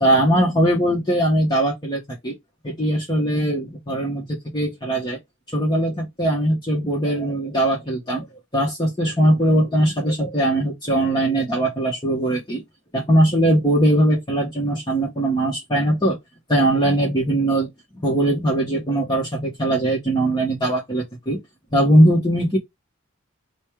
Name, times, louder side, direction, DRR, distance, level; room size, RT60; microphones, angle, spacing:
voice 1, 0.0-2.4 2.6-5.2 5.5-8.3 8.5-12.6 12.9-16.2 16.5-17.7 17.9-21.4 21.7-22.6, right 1 dB, 20° left, 1.0 m, -20 dB
5.2 x 2.2 x 4.6 m
head